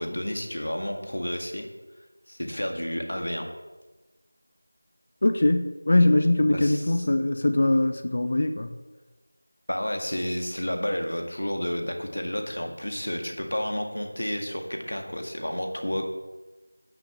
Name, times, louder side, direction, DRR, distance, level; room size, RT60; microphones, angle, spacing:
voice 1, 0.0-1.7 2.3-3.5 6.5-6.9 9.7-16.1, equal, 60° left, 4 dB, 1.9 m, -31 dB
voice 2, 5.2-8.7, left 1 dB, 35° left, 9 dB, 0.6 m, -22 dB
9.8 x 6.7 x 7.1 m, 1.2 s
figure-of-eight pair, 175°, 0 cm